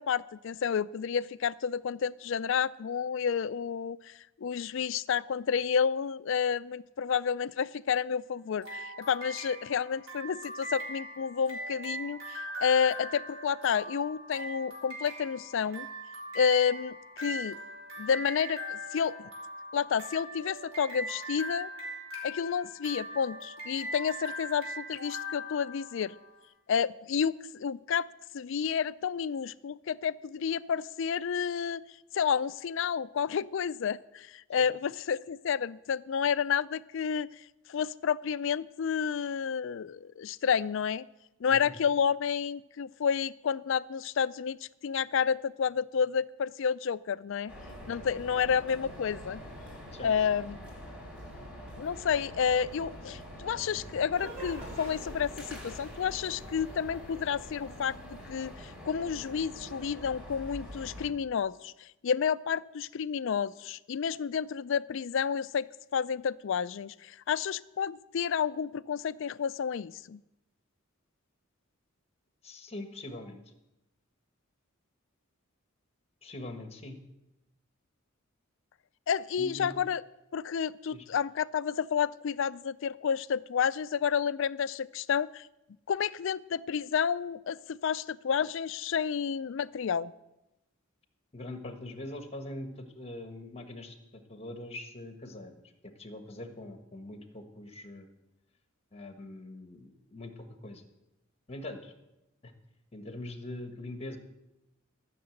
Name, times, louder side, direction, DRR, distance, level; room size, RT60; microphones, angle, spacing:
voice 1, 0.0-15.9 16.3-17.6 18.0-19.3 19.7-21.7 22.2-26.1 26.7-28.1 28.3-31.8 32.1-37.3 37.7-41.0 41.4-47.5 47.9-49.4 50.0-50.6 51.8-70.2 79.1-80.0 80.3-85.5 85.9-90.1, left 7 dB, 65° left, 18 dB, 0.4 m, -30 dB
sound 1, 8.6-26.3, equal, 85° right, 3.8 m, -41 dB
sound 2, 47.5-61.1, equal, 5° right, 3.2 m, -45 dB
sound 3, 54.1-58.8, right 1 dB, 40° right, 3.8 m, -48 dB
voice 2, 72.4-73.5 76.2-77.0 79.4-79.8 80.9-81.1 91.3-98.1 98.9-100.9 101.5-101.9 102.4-102.5 102.9-104.2, left 1 dB, 30° left, 6 dB, 1.4 m, -43 dB
14.0 x 6.7 x 7.8 m, 0.94 s
head